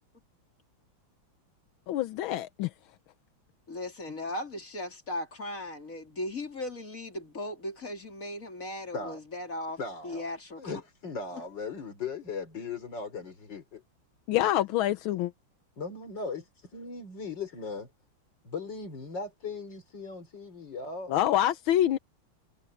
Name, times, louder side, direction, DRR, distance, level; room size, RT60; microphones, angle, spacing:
voice 1, 1.9-2.7 14.3-15.3 21.1-22.0, left 13 dB, 85° left, 1.5 m, -26 dB
voice 2, 3.7-10.8 11.3-11.4, left 1 dB, 40° left, 3.6 m, -37 dB
voice 3, 9.8-10.2 10.6-13.8 15.8-17.9 18.4-21.2, left 4 dB, 60° left, 4.4 m, -38 dB
omnidirectional pair, 2.2 m